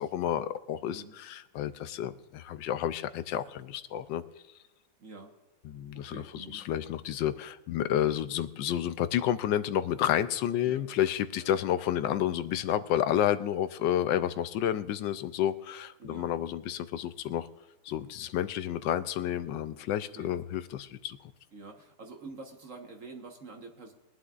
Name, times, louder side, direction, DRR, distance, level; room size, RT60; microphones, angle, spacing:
voice 1, 0.0-4.2 5.6-17.5 17.8-21.2, left 11 dB, 80° left, 12 dB, 1.3 m, -30 dB
voice 2, 5.0-5.3 5.9-6.6 10.6-10.8 11.4-11.5 16.0-16.3 20.1-20.3 21.5-23.9, right 3 dB, 45° right, 3 dB, 1.6 m, -47 dB
21.0 x 11.5 x 2.5 m, 1.0 s
omnidirectional pair, 2.0 m